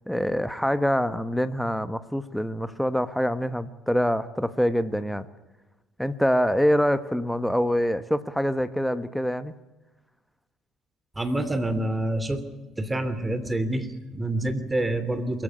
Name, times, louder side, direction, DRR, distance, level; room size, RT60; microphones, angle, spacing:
voice 1, 0.1-5.3 6.0-9.5, equal, ahead, 12 dB, 1.3 m, -25 dB
voice 2, 11.2-12.4 12.8-15.4, right 1 dB, 15° right, 11 dB, 2.9 m, -27 dB
24.0 x 15.0 x 9.9 m, 1.1 s
hypercardioid pair, 55°, 0 cm